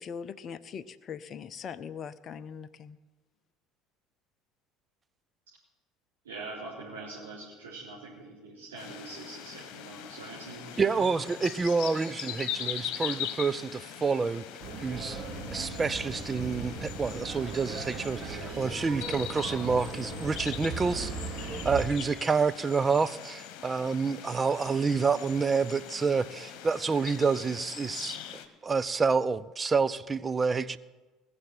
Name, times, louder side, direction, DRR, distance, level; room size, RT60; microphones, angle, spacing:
voice 1, 0.0-3.0, left 7 dB, 40° left, 0.6 m, -41 dB
voice 2, 6.2-11.1, right 3 dB, 75° right, 3.9 m, -43 dB
sound 1, 8.8-28.5, left 11 dB, 55° left, 1.4 m, -41 dB
voice 3, 10.8-14.4 14.8-15.2 15.5-21.1 21.6-28.2 28.6-30.8, right 5 dB, 25° right, 0.6 m, -28 dB
sound 2, 14.6-21.9, right 3 dB, 40° right, 2.8 m, -38 dB
20.0 x 7.0 x 9.1 m
figure-of-eight pair, 60°, 0 cm